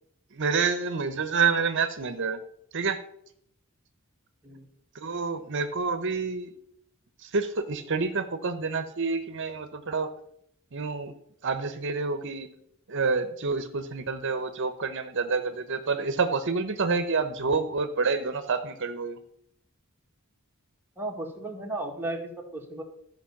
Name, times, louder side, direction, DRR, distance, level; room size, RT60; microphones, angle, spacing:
voice 1, 0.3-2.4 2.7-3.0 4.9-6.5 7.2-10.1 10.7-11.1 11.4-12.5 12.9-19.2, right 4 dB, 60° right, 9 dB, 0.8 m, -28 dB
voice 2, 21.0-22.8, right 2 dB, 10° right, 1 dB, 1.9 m, -35 dB
13.0 x 5.3 x 7.1 m, 0.72 s
head